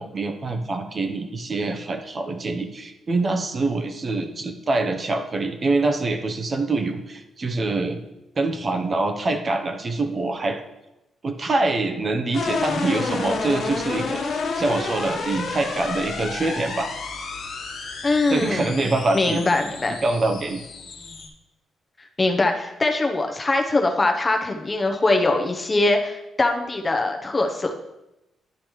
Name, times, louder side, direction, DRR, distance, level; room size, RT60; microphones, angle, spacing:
voice 1, 0.0-8.0 8.4-10.6 11.2-14.2 14.6-16.9 18.3-19.4 20.0-20.6, right 2 dB, 30° right, 6 dB, 0.7 m, -25 dB
sound 1, 12.3-21.3, left 4 dB, 65° left, 1.2 m, -30 dB
voice 2, 18.0-18.9 19.1-20.0 22.2-27.7, left 2 dB, 20° left, 3 dB, 0.7 m, -22 dB
11.5 x 5.1 x 3.1 m, 0.93 s
cardioid pair, 140°, 0 cm